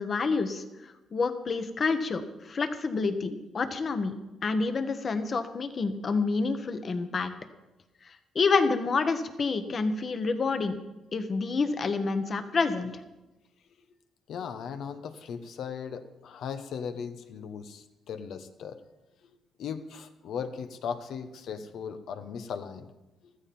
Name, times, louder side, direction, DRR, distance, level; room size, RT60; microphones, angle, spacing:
voice 1, 0.0-4.1 4.4-7.3 8.3-10.8 11.1-12.9, left 4 dB, 45° left, 9 dB, 1.3 m, -28 dB
voice 2, 14.3-18.8 19.6-22.9, left 7 dB, 70° left, 8 dB, 1.1 m, -37 dB
14.5 x 13.5 x 4.4 m, 1.0 s
cardioid pair, 90°, 0 cm